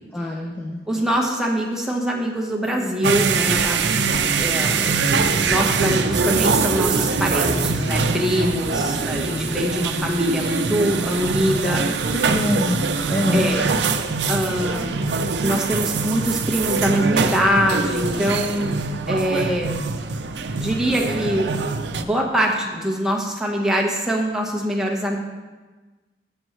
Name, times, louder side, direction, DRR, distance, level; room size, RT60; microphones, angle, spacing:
voice 1, 0.1-0.8 12.3-12.8 13.1-13.5, left 1 dB, 10° left, -1 dB, 0.6 m, -23 dB
voice 2, 0.9-4.1 4.4-11.9 13.3-13.6 14.3-14.9 15.4-18.8 19.1-19.8 20.6-21.5 21.9-25.2, equal, 5° right, -2 dB, 1.1 m, -23 dB
sound 1, 2.6-13.9, equal, 55° left, 0.9 m, -32 dB
sound 2, 3.0-22.0, right 4 dB, 80° right, 0.6 m, -23 dB
12.5 x 7.9 x 3.1 m, 1.3 s
head